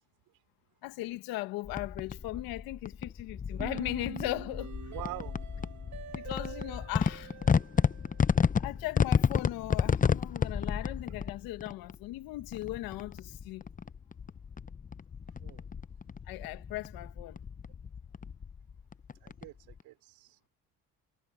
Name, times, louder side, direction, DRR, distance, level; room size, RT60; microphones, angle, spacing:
voice 1, 0.8-4.8 6.1-7.3 8.6-13.7 16.3-17.4, left 18 dB, 85° left, 1.5 m, -38 dB
sound 1, 1.7-19.8, left 6 dB, 25° left, 0.7 m, -32 dB
sound 2, 3.6-8.6, right 9 dB, 55° right, 2.7 m, -46 dB
voice 2, 4.9-5.3 15.4-15.7 19.2-20.5, right 19 dB, 80° right, 4.6 m, -44 dB
supercardioid pair, 90°, 35 cm